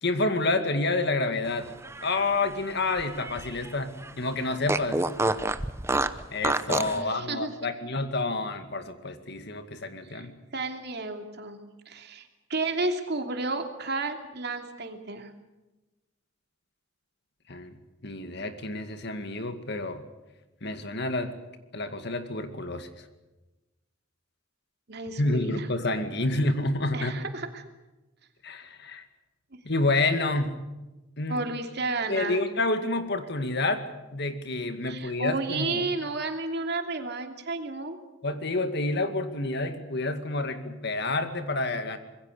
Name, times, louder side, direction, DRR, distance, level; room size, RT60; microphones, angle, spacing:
voice 1, 0.0-1.7 2.0-5.0 6.3-10.3 17.5-17.7 18.0-20.0 20.6-21.3 21.7-22.9 25.2-27.2 28.4-29.0 29.6-30.5 31.2-31.4 32.1-33.8 34.1-35.8 38.2-42.0, left 2 dB, 55° left, 8 dB, 2.2 m, -29 dB
Fart, 1.7-3.7 4.0-4.1 4.7-7.0, right 2 dB, 15° right, 0.8 m, -29 dB
voice 2, 6.9-7.7 10.1-10.3 10.5-11.6 11.9-15.3 24.9-25.7 26.9-27.7 31.3-32.4 34.8-38.0, right 3 dB, 55° right, 5 dB, 2.8 m, -32 dB
25.5 x 21.5 x 6.8 m, 1.1 s
head